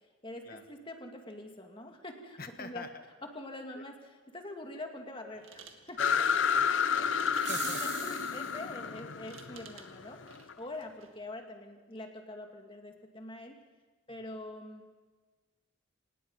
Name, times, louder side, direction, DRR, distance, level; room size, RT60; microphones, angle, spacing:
voice 1, 0.0-2.8 3.3-6.0 7.2-7.5 7.8-10.2 10.6-13.6 14.1-14.8, left 1 dB, 25° left, 3 dB, 2.3 m, -44 dB
voice 2, 2.4-2.9 3.7-3.8 6.0-7.8 14.1-14.2, left 3 dB, 45° left, 7 dB, 1.6 m, -45 dB
sound 1, 5.3-11.3, right 6 dB, 75° right, 2.1 m, -56 dB
sound 2, 6.0-10.5, left 7 dB, 65° left, 0.7 m, -30 dB
sound 3, 7.3-8.7, right 8 dB, 60° right, 2.8 m, -41 dB
25.5 x 19.5 x 5.5 m, 1.3 s
head